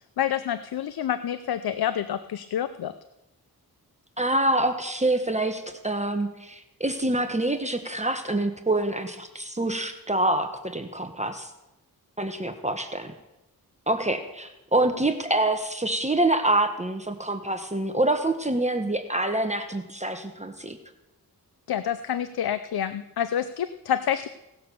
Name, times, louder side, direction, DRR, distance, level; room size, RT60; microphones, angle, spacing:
voice 1, 0.2-2.9 21.7-24.3, left 9 dB, 75° left, 11 dB, 0.6 m, -28 dB
voice 2, 4.2-11.5 12.2-13.1 13.9-20.8, right 2 dB, 20° right, 6 dB, 1.1 m, -26 dB
17.5 x 6.8 x 6.9 m, 0.93 s
cardioid pair, 65°, 38 cm